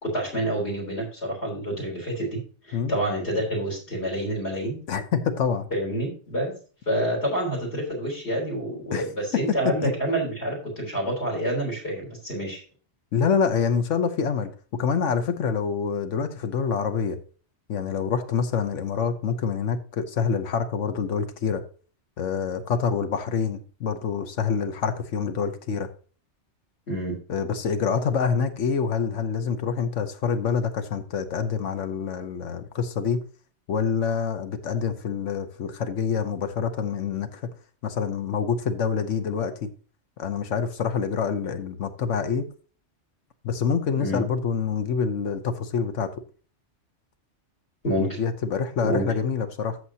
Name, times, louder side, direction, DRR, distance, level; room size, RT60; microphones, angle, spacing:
voice 1, 0.0-4.8 5.7-6.5 6.9-12.6 26.9-27.1 44.0-44.2 47.8-48.1 48.8-49.0, right 1 dB, 60° left, 4.0 m, -28 dB
voice 2, 4.9-5.7 8.9-9.0 9.8-9.9 13.1-17.2 17.7-21.6 22.2-25.9 27.3-33.2 33.7-37.4 37.8-39.7 40.2-42.5 43.4-46.1 48.0-49.8, left 6 dB, 85° left, 1.2 m, -26 dB
14.0 x 6.3 x 2.8 m
omnidirectional pair, 1.2 m